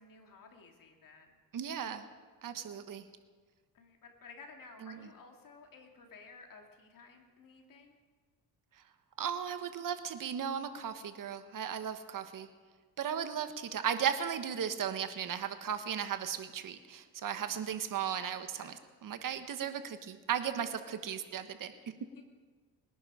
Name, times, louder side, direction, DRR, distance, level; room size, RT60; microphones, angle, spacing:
voice 1, 0.0-1.4 3.7-8.0 12.2-12.5 17.5-17.6 18.2-18.3 18.6-18.8 20.6-20.7 21.9-22.2, left 4 dB, 55° left, 3 dB, 2.6 m, -55 dB
voice 2, 1.5-2.0 2.4-3.1 4.8-5.0 9.2-12.5 13.0-18.7 19.0-21.7, right 8 dB, 55° right, 10 dB, 1.2 m, -36 dB
21.0 x 11.0 x 5.0 m, 1.5 s
cardioid pair, 90°, 38 cm